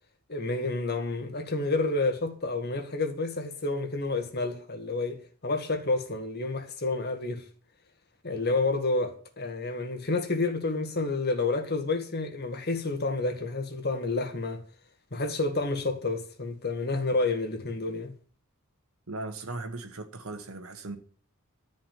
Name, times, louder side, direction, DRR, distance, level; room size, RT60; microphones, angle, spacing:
voice 1, 0.3-7.4 8.2-14.6 15.1-18.1, left 3 dB, 50° left, 2.0 m, -29 dB
voice 2, 19.1-21.0, right 2 dB, 80° right, 2.0 m, -38 dB
12.5 x 5.7 x 9.4 m
head